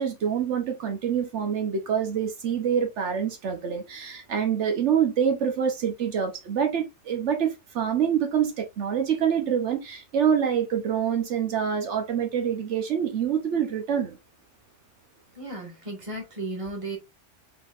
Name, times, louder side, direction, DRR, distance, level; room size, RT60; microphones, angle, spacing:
voice 1, 0.0-14.2, right 8 dB, 75° right, 1.1 m, -26 dB
voice 2, 15.4-17.0, right 2 dB, 25° right, 1.8 m, -34 dB
5.6 x 3.6 x 2.5 m
omnidirectional pair, 1.2 m